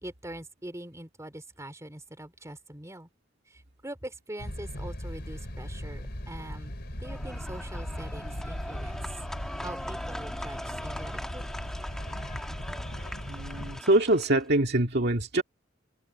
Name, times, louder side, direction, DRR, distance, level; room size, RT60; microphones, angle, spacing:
voice 1, 0.0-3.1 3.5-6.7 7.0-9.0 9.6-11.5, right 1 dB, 15° right, 3.5 m, -43 dB
sound 1, 4.4-13.8, equal, 55° left, 4.1 m, -38 dB
sound 2, 7.0-14.4, equal, 5° left, 1.7 m, -41 dB
voice 2, 13.3-15.4, right 1 dB, 55° right, 2.0 m, -24 dB
head